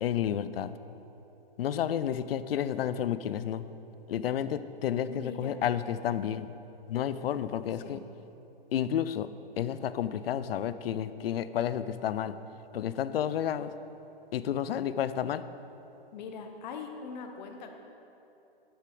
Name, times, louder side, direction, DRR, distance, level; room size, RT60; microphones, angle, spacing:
voice 1, 0.0-0.7 1.6-3.7 4.1-6.5 6.9-8.0 8.7-9.3 9.6-12.4 12.7-13.7 14.3-15.4, left 10 dB, 75° left, 13 dB, 0.5 m, -31 dB
voice 2, 5.1-5.6 7.8-8.0 16.1-17.7, left 5 dB, 45° left, 4 dB, 1.1 m, -41 dB
12.0 x 6.9 x 4.9 m, 3.0 s
hypercardioid pair, 145°, 30 cm